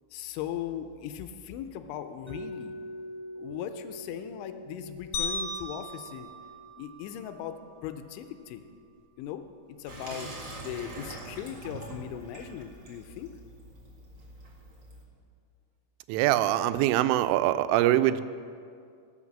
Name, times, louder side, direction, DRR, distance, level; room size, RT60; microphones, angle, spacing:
voice 1, 0.1-2.7 3.4-6.3 6.8-8.6 9.2-9.4 9.8-13.3, left 10 dB, 80° left, 9 dB, 3.0 m, -38 dB
Mallet percussion, 2.3-8.1, equal, 5° right, 1.3 m, -45 dB
sound 1, 5.1-7.5, left 2 dB, 60° left, 2.6 m, -36 dB
Water tap faucet / Sink (filling or washing), 9.9-15.0, right 2 dB, 55° right, 1.2 m, -44 dB
voice 2, 16.1-18.2, right 14 dB, 85° right, 12 dB, 3.0 m, -23 dB
17.5 x 6.4 x 7.3 m, 2.3 s
omnidirectional pair, 5.5 m